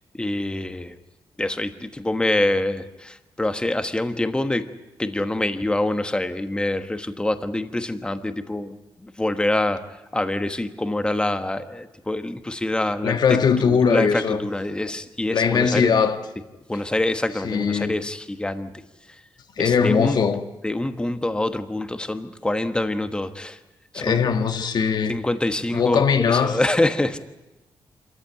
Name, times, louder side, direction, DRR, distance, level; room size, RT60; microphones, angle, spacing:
voice 1, 0.1-1.0 1.4-4.7 5.0-9.8 10.1-15.9 16.7-18.7 19.6-20.2 20.6-23.6 23.9-24.3 25.1-27.2, left 1 dB, 10° left, 1.3 m, -25 dB
voice 2, 13.0-14.4 15.3-16.2 17.4-18.0 19.6-20.4 23.9-25.2 25.7-26.6, left 6 dB, 55° left, 1.5 m, -20 dB
26.5 x 14.5 x 9.2 m
cardioid pair, 120°, 8 cm